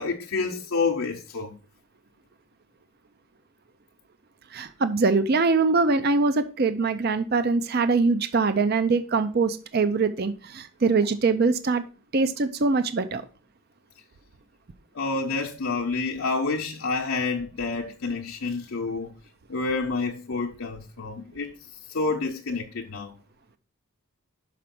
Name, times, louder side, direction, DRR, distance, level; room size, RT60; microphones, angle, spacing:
voice 1, 0.0-1.6 14.9-19.1 19.5-21.6 21.9-23.1, left 4 dB, 70° left, 0.7 m, -28 dB
voice 2, 4.5-11.8 12.1-13.2, right 4 dB, 45° right, 0.5 m, -23 dB
6.0 x 5.0 x 5.9 m
head